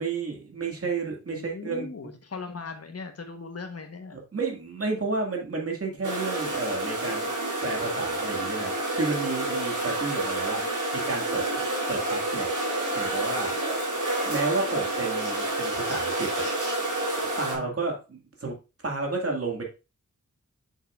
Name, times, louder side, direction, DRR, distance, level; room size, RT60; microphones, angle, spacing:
voice 1, 0.0-1.9 4.3-7.3 7.6-10.7 10.9-11.6 11.9-12.5 13.0-13.5 14.2-16.5 17.2-18.6 18.8-19.6, right 3 dB, 50° right, 0 dB, 2.2 m, -31 dB
voice 2, 1.3-4.2 17.5-17.8, left 4 dB, 55° left, 6 dB, 1.2 m, -39 dB
sound 1, 6.0-17.5, right 2 dB, 85° right, 3.1 m, -29 dB
8.2 x 6.6 x 2.5 m, 0.29 s
wide cardioid pair, 115°, 30 cm